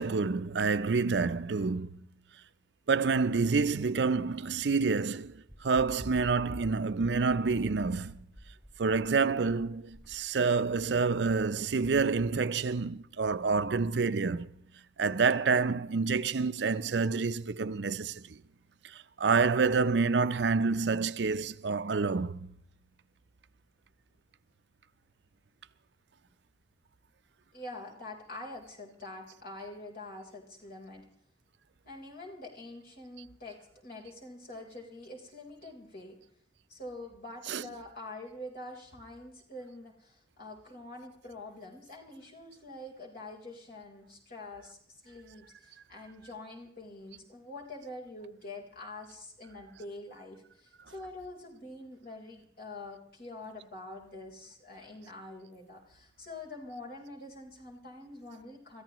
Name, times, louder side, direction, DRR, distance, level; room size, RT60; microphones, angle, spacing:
voice 1, 0.0-2.0 2.9-8.2 8.8-14.5 15.0-18.4 18.8-22.5 37.5-37.6, right 4 dB, 70° right, 0.5 m, -28 dB
sound 1, 5.5-12.3, equal, 10° left, 2.3 m, -49 dB
voice 2, 27.5-31.1 31.8-36.2 36.7-44.8 45.0-58.8, left 2 dB, 55° left, 3.9 m, -45 dB
26.0 x 14.5 x 3.0 m
head